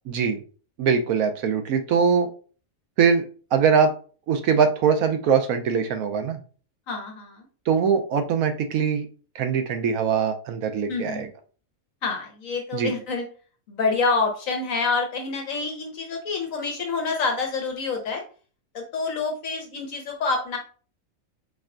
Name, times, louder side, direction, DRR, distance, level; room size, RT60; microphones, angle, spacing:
voice 1, 0.1-0.4 0.8-2.3 3.0-3.2 3.5-3.9 4.3-6.4 7.7-9.1 9.3-11.3 12.7-12.9, right 6 dB, 80° right, 7 dB, 1.1 m, -22 dB
voice 2, 6.9-7.5 10.9-11.3 12.0-13.3 13.7-18.2 18.7-20.6, left 4 dB, 70° left, 3 dB, 1.3 m, -27 dB
4.8 x 4.3 x 2.4 m, 0.39 s
omnidirectional pair, 1.5 m